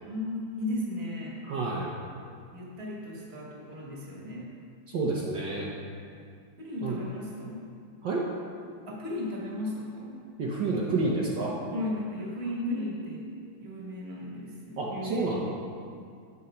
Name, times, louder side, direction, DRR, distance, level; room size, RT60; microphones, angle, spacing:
voice 1, 0.0-1.4 2.5-4.5 6.6-7.6 8.9-10.2 11.7-13.3 13.6-15.4, left 1 dB, 30° right, -3 dB, 1.7 m, -36 dB
voice 2, 1.4-1.9 4.9-5.7 6.8-7.0 8.0-8.2 10.4-11.6 12.6-12.9 14.8-15.4, right 3 dB, 60° right, -4 dB, 1.5 m, -29 dB
10.5 x 7.4 x 4.3 m, 2.3 s
omnidirectional pair, 2.3 m